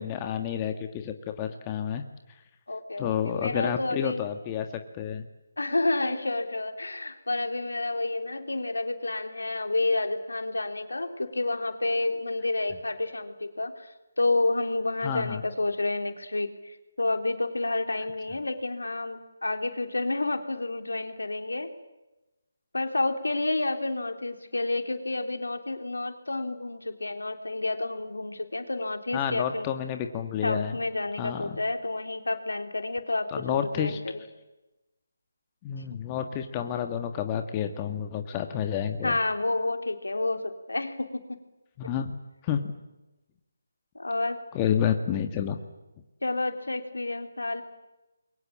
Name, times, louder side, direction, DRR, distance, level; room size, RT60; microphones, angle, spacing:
voice 1, 0.0-2.0 3.0-4.7 4.9-5.2 15.0-15.4 29.1-30.8 31.2-31.5 33.3-34.0 35.6-39.2 41.8-42.2 42.4-42.6 44.5-45.6, left 9 dB, 20° left, 6 dB, 1.6 m, -30 dB
voice 2, 2.7-4.2 5.6-21.7 22.7-29.7 30.4-34.2 39.0-41.4 43.9-44.4 46.2-47.6, left 2 dB, 75° left, 6 dB, 3.3 m, -30 dB
28.5 x 23.0 x 7.5 m, 1.0 s
figure-of-eight pair, 150°, 0 cm